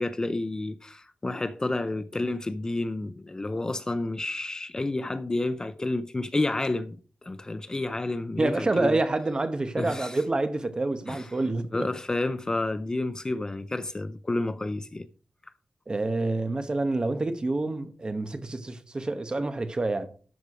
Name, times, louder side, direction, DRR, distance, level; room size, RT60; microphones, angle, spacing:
voice 1, 0.0-9.0 9.8-10.2 11.1-11.2 11.7-15.1, left 2 dB, 25° left, 0.4 m, -30 dB
voice 2, 8.4-11.9 15.9-20.1, right 2 dB, 30° right, 0.9 m, -28 dB
12.5 x 4.7 x 4.8 m
wide cardioid pair, 135°, 3 cm